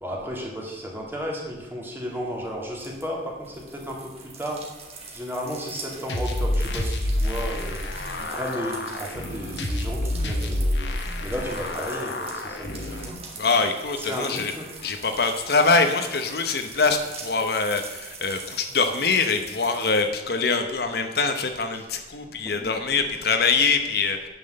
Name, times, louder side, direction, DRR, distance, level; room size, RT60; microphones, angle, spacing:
voice 1, 0.0-10.9 11.2-13.2 14.0-14.6 21.7-21.9 22.6-22.7, equal, 10° right, -1 dB, 2.1 m, -34 dB
sound 1, 2.0-20.0, right 4 dB, 35° right, 1.8 m, -43 dB
sound 2, 6.1-13.1, left 1 dB, 75° left, 1.3 m, -28 dB
voice 2, 13.4-14.5 14.8-24.3, left 4 dB, 60° left, 6 dB, 0.9 m, -24 dB
8.8 x 6.1 x 7.7 m, 1.3 s
head